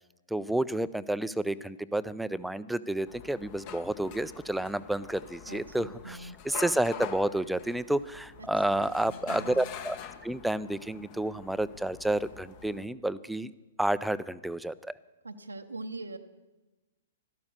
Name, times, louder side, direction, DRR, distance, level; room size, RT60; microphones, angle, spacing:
voice 1, 0.3-10.0 10.2-13.5 13.8-14.9, right 1 dB, ahead, 15 dB, 0.4 m, -30 dB
sound 1, 3.1-12.8, left 8 dB, 35° left, 0.9 m, -45 dB
voice 2, 5.5-6.4 8.4-9.7 15.2-16.2, right 2 dB, 80° right, 5 dB, 0.7 m, -43 dB
13.0 x 12.0 x 6.7 m, 1.1 s
figure-of-eight pair, 110°, 0 cm